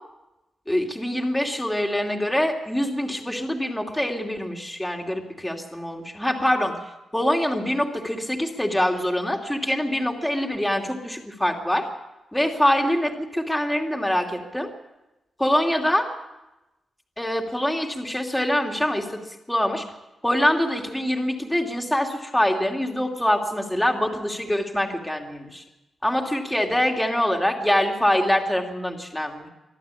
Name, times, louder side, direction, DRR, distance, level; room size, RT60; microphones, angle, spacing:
voice 1, 0.7-6.8 7.1-11.9 12.3-14.7 15.4-16.1 17.2-19.2 19.5-19.8 20.2-25.6 26.0-29.5, left 1 dB, 5° left, 2 dB, 2.7 m, -24 dB
23.5 x 14.0 x 8.5 m, 0.98 s
wide cardioid pair, 125°, 0 cm